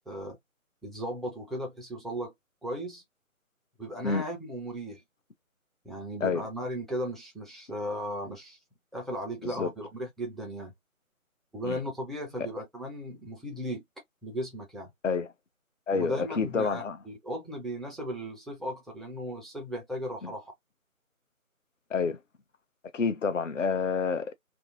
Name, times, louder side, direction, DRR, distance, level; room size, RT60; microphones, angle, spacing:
voice 1, 0.1-0.4 0.8-2.3 2.6-3.0 3.8-5.0 5.8-8.6 8.9-10.7 11.5-13.8 14.2-14.9 15.9-20.5, equal, ahead, 0.5 m, -36 dB
voice 2, 15.9-17.0 20.2-20.3 21.9-22.2 22.9-24.3, left 5 dB, 60° left, 0.6 m, -28 dB
2.6 x 2.4 x 2.6 m
figure-of-eight pair, 180°, 43 cm